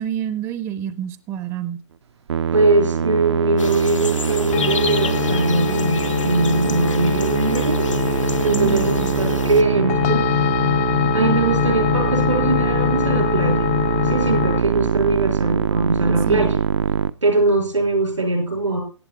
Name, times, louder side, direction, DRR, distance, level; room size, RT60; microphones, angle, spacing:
voice 1, 0.0-1.8 8.5-9.1 16.3-16.5, right 10 dB, 15° right, 14 dB, 0.6 m, -28 dB
Musical instrument, 2.3-17.1, right 7 dB, 60° right, 0.6 m, -23 dB
voice 2, 2.5-7.8 8.1-10.3 11.0-13.6 14.0-16.6 17.2-18.8, right 2 dB, 85° right, 4 dB, 5.2 m, -21 dB
sound 1, 3.6-9.6, left 4 dB, 85° left, 1.5 m, -30 dB
sound 2, 4.5-14.6, left 16 dB, 30° left, 0.5 m, -24 dB
14.5 x 8.7 x 4.2 m, 0.36 s
figure-of-eight pair, 130°, 16 cm